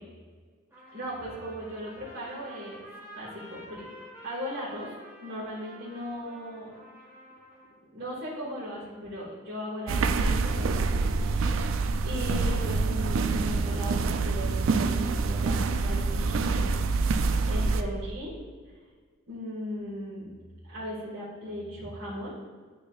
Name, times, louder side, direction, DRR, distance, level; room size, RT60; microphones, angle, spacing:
Trumpet, 0.7-7.8, equal, 10° right, 1.4 m, -49 dB
voice 1, 0.9-2.9 3.2-3.8 4.2-4.9 5.2-6.7 7.9-10.9 11.2-11.7 12.0-16.6 17.0-18.3 19.3-20.3 20.6-22.3, equal, 50° right, -9 dB, 1.8 m, -37 dB
sound 1, 9.9-17.8, right 4 dB, 75° right, 0.4 m, -26 dB
9.8 x 4.3 x 2.4 m, 1.5 s
head